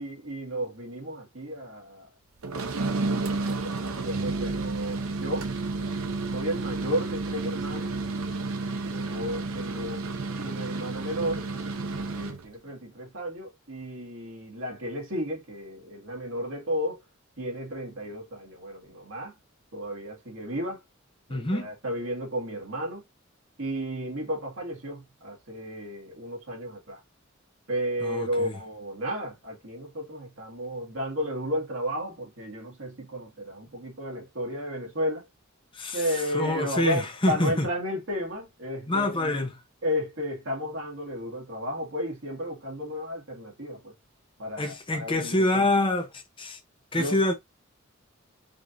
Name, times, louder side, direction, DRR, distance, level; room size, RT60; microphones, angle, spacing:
voice 1, 0.0-2.1 2.8-5.5 6.3-7.9 8.8-10.0 10.4-11.5 12.1-17.0 17.4-19.3 19.7-20.8 21.3-23.0 23.6-27.0 27.7-35.2 35.9-39.4 39.8-43.9 44.4-45.7 47.0-47.2, equal, 70° right, 2.1 m, -33 dB
sound 1, 2.4-12.5, right 3 dB, 90° right, 0.6 m, -31 dB
voice 2, 21.3-21.7 28.0-28.5 35.7-37.7 38.9-39.5 44.6-46.6 46.9-47.3, left 2 dB, 25° left, 0.8 m, -26 dB
5.0 x 2.8 x 2.6 m
head